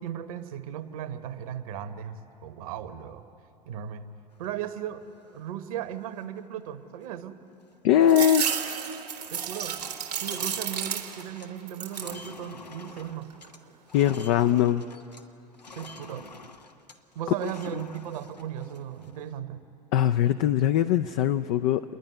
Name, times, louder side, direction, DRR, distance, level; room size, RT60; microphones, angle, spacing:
voice 1, 0.0-3.2 3.7-4.0 4.4-7.4 9.3-9.8 10.2-13.3 15.7-16.3 17.1-19.6, right 10 dB, 60° right, 10 dB, 1.2 m, -37 dB
sound 1, 4.3-5.4 5.9-6.0 6.2-6.6 7.0-7.2 7.5-8.6 8.8-9.1 9.3-15.3 15.5-19.4, left 3 dB, 85° left, 1.0 m, -48 dB
voice 2, 7.8-8.5 13.9-14.8 19.9-21.8, left 10 dB, 50° left, 10 dB, 0.5 m, -21 dB
sound 2, 8.1-11.4 11.7-12.3 12.7-13.5, right 8 dB, 75° right, 1.4 m, -32 dB
28.5 x 10.5 x 9.6 m, 2.7 s
figure-of-eight pair, 80°, 21 cm